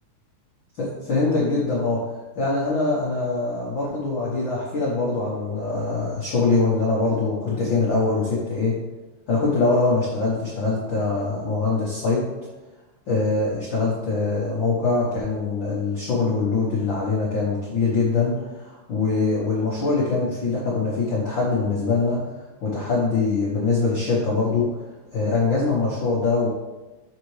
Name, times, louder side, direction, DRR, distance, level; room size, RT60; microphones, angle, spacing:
voice 1, 0.8-2.1 2.4-8.8 9.3-12.2 13.1-22.2 22.6-24.7 25.1-26.5, left 3 dB, 80° left, -5 dB, 1.0 m, -23 dB
6.5 x 5.6 x 3.2 m, 1.1 s
omnidirectional pair, 3.8 m